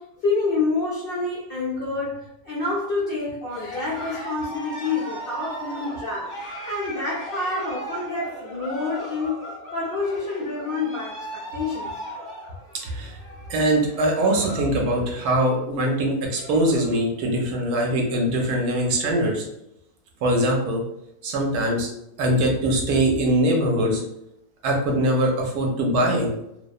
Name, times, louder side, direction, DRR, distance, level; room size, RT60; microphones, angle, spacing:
voice 1, 0.0-6.4 6.7-9.5 9.7-12.0, left 3 dB, 80° left, -6 dB, 0.5 m, -28 dB
Cheering, 3.5-14.7 15.0-15.4 15.9-16.0 16.1-17.0, right 1 dB, 20° right, 0.5 m, -37 dB
voice 2, 12.8-13.2 13.5-19.4 20.2-20.8 21.2-21.9 22.2-24.0 24.6-26.3, right 1 dB, 75° right, 1 dB, 1.0 m, -22 dB
2.7 x 2.1 x 2.3 m, 0.81 s
omnidirectional pair, 1.7 m